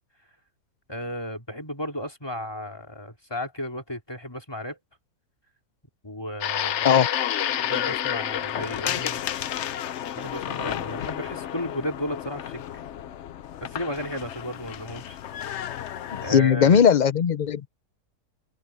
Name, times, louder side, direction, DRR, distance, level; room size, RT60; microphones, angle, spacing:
voice 1, 0.9-4.8 6.0-7.0 7.5-9.2 10.1-12.6 13.6-15.2 16.2-16.8, equal, 15° left, 3.4 m, -34 dB
sound 1, 6.4-16.3, left 10 dB, 60° left, 0.8 m, -31 dB
voice 2, 16.1-17.7, left 8 dB, 80° left, 0.4 m, -19 dB
omnidirectional pair, 1.7 m